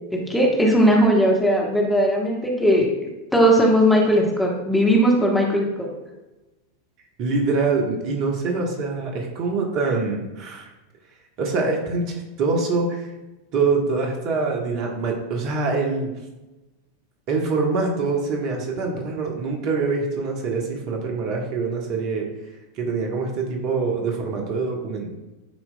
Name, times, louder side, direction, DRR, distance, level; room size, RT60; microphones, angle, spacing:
voice 1, 0.1-2.9 3.3-5.9, equal, 5° left, -1 dB, 1.1 m, -18 dB
voice 2, 7.2-10.7 11.4-13.1 13.5-16.1 17.3-22.3 22.8-25.1, right 4 dB, 40° right, 1 dB, 1.1 m, -24 dB
10.5 x 4.4 x 2.2 m, 1.1 s
figure-of-eight pair, 90°, 0 cm